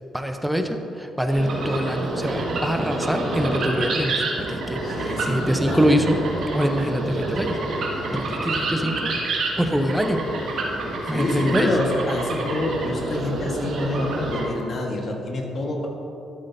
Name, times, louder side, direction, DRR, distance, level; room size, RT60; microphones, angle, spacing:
voice 1, 0.1-6.2 6.5-9.1 9.5-10.2 11.1-11.8, equal, 5° right, 5 dB, 0.7 m, -24 dB
sound 1, 1.3-14.4, right 2 dB, 65° right, 1.8 m, -28 dB
voice 2, 4.8-5.8 11.1-15.9, left 2 dB, 50° left, 0 dB, 1.5 m, -27 dB
12.0 x 8.3 x 2.7 m, 2.9 s
cardioid pair, 90°, 0 cm